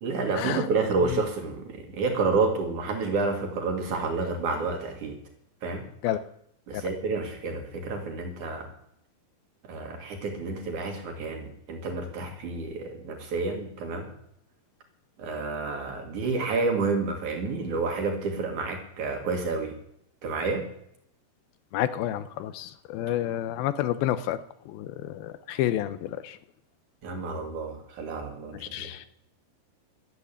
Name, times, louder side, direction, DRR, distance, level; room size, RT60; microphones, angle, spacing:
voice 1, 0.0-5.2 5.6-5.9 6.7-8.7 9.6-14.1 15.2-19.7 20.2-20.7 27.0-28.9, right 3 dB, 60° right, 3 dB, 2.9 m, -29 dB
voice 2, 21.7-24.4 24.7-26.4 28.6-29.1, left 12 dB, 85° left, 14 dB, 2.5 m, -29 dB
12.5 x 8.3 x 9.8 m, 0.75 s
omnidirectional pair, 4.2 m